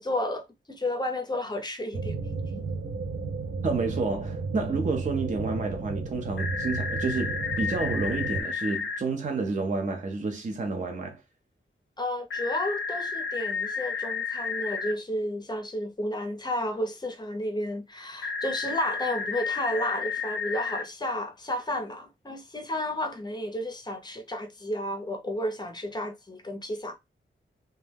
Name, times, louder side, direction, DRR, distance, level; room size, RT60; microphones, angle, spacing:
voice 1, 0.0-2.2 2.6-2.7 12.0-26.9, left 1 dB, 20° left, 0.6 m, -32 dB
sound 1, 1.9-8.4, right 4 dB, 90° right, 0.5 m, -33 dB
voice 2, 3.6-11.2, right 3 dB, 40° right, 0.5 m, -30 dB
sound 2, 6.4-9.0 12.3-14.9 18.2-20.8, left 5 dB, 75° left, 0.4 m, -32 dB
2.2 x 2.1 x 3.3 m
wide cardioid pair, 130°, 20 cm